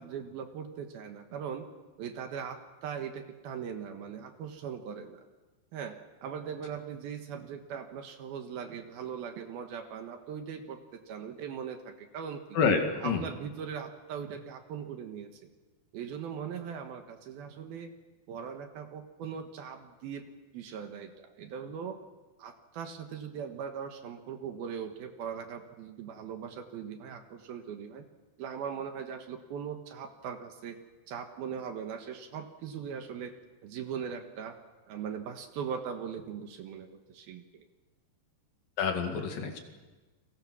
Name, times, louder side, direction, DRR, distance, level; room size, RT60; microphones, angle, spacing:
voice 1, 0.0-1.7 2.0-5.2 5.7-12.6 13.0-15.3 15.9-17.9 18.3-22.0 22.4-28.1 28.4-30.8 31.1-33.3 33.6-34.6 34.9-37.6, right 7 dB, 65° right, 6 dB, 3.0 m, -40 dB
voice 2, 12.6-13.2 38.8-39.6, left 5 dB, 60° left, 4 dB, 3.6 m, -28 dB
30.0 x 22.5 x 6.2 m, 1.2 s
omnidirectional pair, 5.0 m